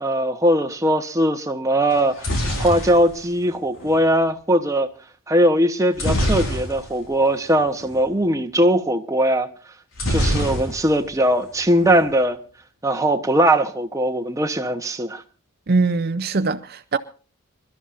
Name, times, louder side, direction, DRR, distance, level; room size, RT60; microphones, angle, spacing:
voice 1, 0.0-2.3 2.6-4.9 5.3-9.5 10.1-12.4 12.8-15.2, right 1 dB, 15° right, 1.0 m, -20 dB
sound 1, 1.9-4.0 6.0-7.1 7.4-7.6 7.8-8.0 10.0-11.1 11.4-12.0, equal, 75° left, 4.3 m, -25 dB
voice 2, 15.7-17.0, right 3 dB, 45° right, 0.6 m, -21 dB
26.5 x 12.5 x 2.6 m
head